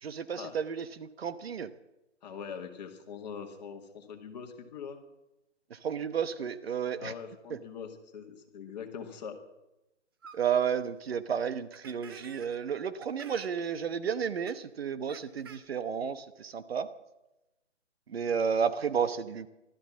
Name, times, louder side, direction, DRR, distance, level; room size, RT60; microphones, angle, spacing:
voice 1, 0.0-1.7 5.7-7.1 7.5-7.6 10.3-16.9 18.1-19.5, right 7 dB, 55° right, 12 dB, 1.0 m, -32 dB
voice 2, 2.2-5.0 7.0-9.4, left 7 dB, 35° left, 4 dB, 2.1 m, -42 dB
sound 1, 10.2-10.4 10.8-10.9 11.7-12.6 13.0-13.6 14.5-14.6 15.1-15.6, right 6 dB, 20° right, 0.6 m, -49 dB
15.0 x 13.0 x 7.3 m, 0.95 s
hypercardioid pair, 155°, 36 cm